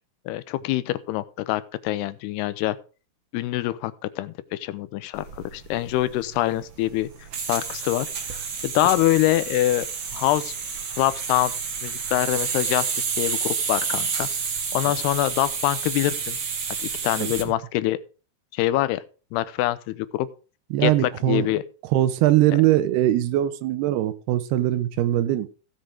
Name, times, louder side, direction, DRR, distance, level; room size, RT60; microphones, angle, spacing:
voice 1, 0.3-2.8 3.3-7.1 7.5-9.9 10.1-10.5 11.0-11.5 11.8-12.9 13.2-14.3 14.7-16.4 16.8-18.0 18.5-19.0 19.3-20.3 20.8-21.6, left 15 dB, 85° left, 15 dB, 2.7 m, -25 dB
sound 1, 5.1-17.5, right 5 dB, 55° right, 1.3 m, -30 dB
voice 2, 20.7-21.5 21.9-25.5, right 14 dB, 80° right, 13 dB, 2.8 m, -21 dB
16.0 x 6.1 x 4.9 m, 0.36 s
omnidirectional pair, 4.7 m